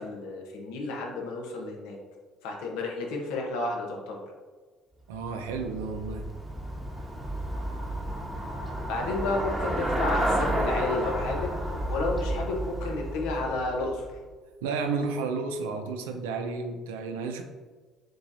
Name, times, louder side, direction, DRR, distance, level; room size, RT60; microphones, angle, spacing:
voice 1, 0.0-2.0 2.4-4.2 8.8-11.6 11.9-14.1, left 2 dB, 80° left, 0 dB, 0.9 m, -31 dB
Traffic noise roadway noise / Bicycle, 5.1-14.3, right 1 dB, 20° right, 1.1 m, -31 dB
voice 2, 5.1-6.3 14.6-17.4, right 4 dB, 90° right, 5 dB, 0.5 m, -32 dB
6.0 x 3.3 x 2.6 m, 1.4 s
hypercardioid pair, 65°, 0 cm